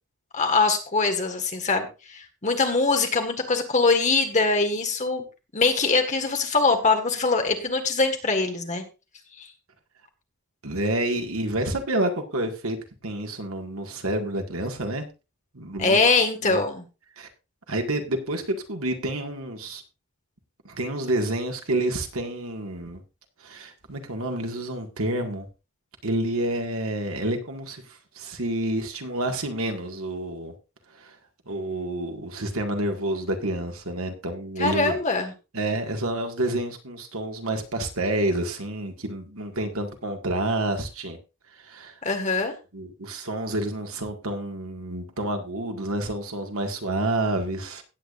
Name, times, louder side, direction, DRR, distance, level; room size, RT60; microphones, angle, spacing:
voice 1, 0.3-5.2 5.5-8.8 9.4-9.5 15.8-16.9 34.6-35.3 42.0-42.5, left 3 dB, 35° left, 5 dB, 1.7 m, -23 dB
voice 2, 10.6-12.8 13.0-15.0 15.5-16.0 16.4-16.6 17.2-17.3 17.7-19.8 20.6-23.0 23.4-25.5 26.0-30.5 30.9-31.2 31.5-35.0 35.5-41.2 41.6-42.0 42.7-47.8, right 1 dB, 70° right, 4 dB, 2.0 m, -29 dB
17.0 x 8.6 x 2.6 m, 0.29 s
head